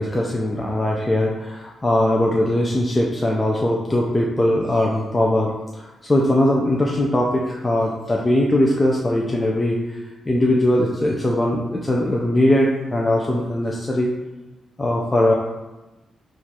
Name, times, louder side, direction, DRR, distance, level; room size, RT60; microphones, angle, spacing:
voice 1, 0.0-9.8 10.3-14.1 14.8-15.3, left 1 dB, 15° left, -2 dB, 0.4 m, -20 dB
6.3 x 2.4 x 2.8 m, 1.1 s
cardioid pair, 130°, 0 cm